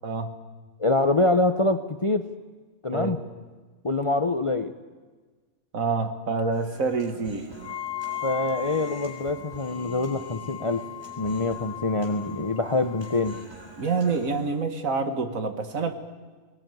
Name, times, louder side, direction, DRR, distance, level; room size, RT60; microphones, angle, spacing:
voice 1, 0.0-0.3 2.9-3.1 5.7-7.5 13.8-15.9, right 4 dB, 70° right, 7 dB, 2.0 m, -27 dB
voice 2, 0.8-2.3 2.8-3.2 3.8-4.7 8.2-10.8 11.2-13.4, left 2 dB, 35° left, 9 dB, 0.6 m, -25 dB
Human voice, 6.5-14.5, right 3 dB, 20° right, 3.7 m, -46 dB
Wind instrument woodwind instrument, 7.6-13.5, left 13 dB, 75° left, 1.6 m, -38 dB
20.0 x 19.5 x 9.2 m, 1.4 s
omnidirectional pair, 1.5 m